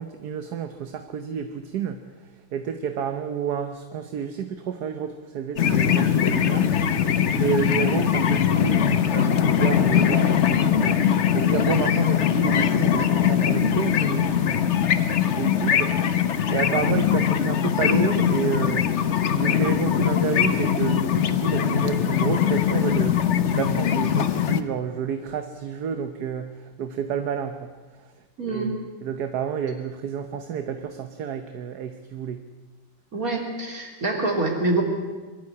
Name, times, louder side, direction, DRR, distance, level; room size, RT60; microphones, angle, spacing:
voice 1, 0.0-18.9 19.3-28.1 28.5-32.4, right 7 dB, 65° right, 8 dB, 1.4 m, -30 dB
sound 1, 5.6-24.6, left 9 dB, 50° left, 0.9 m, -21 dB
voice 2, 28.4-28.7 33.1-34.8, right 2 dB, 50° right, 1 dB, 3.8 m, -25 dB
22.5 x 13.0 x 9.8 m, 1.3 s
omnidirectional pair, 2.0 m